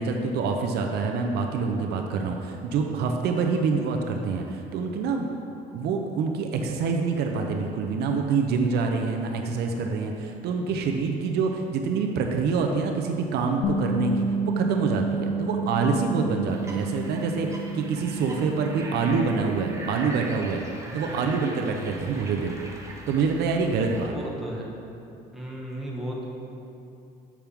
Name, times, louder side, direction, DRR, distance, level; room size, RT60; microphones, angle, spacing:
voice 1, 0.0-5.3 5.7-20.6 20.9-22.6 23.1-24.1, right 4 dB, 75° right, 3 dB, 0.6 m, -26 dB
Bass guitar, 13.6-19.9, right 2 dB, 70° left, 0.7 m, -30 dB
sound 1, 16.5-24.1, right 2 dB, 15° right, 0.9 m, -42 dB
voice 2, 24.0-24.7 25.3-26.2, equal, ahead, -4 dB, 1.2 m, -35 dB
7.2 x 5.9 x 3.5 m, 2.7 s
cardioid pair, 110°, 17 cm